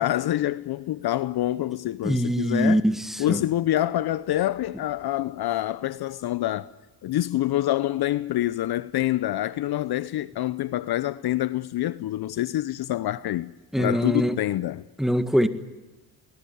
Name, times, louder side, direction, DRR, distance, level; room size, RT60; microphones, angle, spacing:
voice 1, 0.0-2.8 3.2-6.7 7.0-13.5 13.8-14.8, left 14 dB, 55° left, 0.8 m, -26 dB
voice 2, 2.0-3.4 13.7-14.4 15.0-15.5, equal, ahead, 1.8 m, -23 dB
20.5 x 20.0 x 9.4 m
supercardioid pair, 65°, 46 cm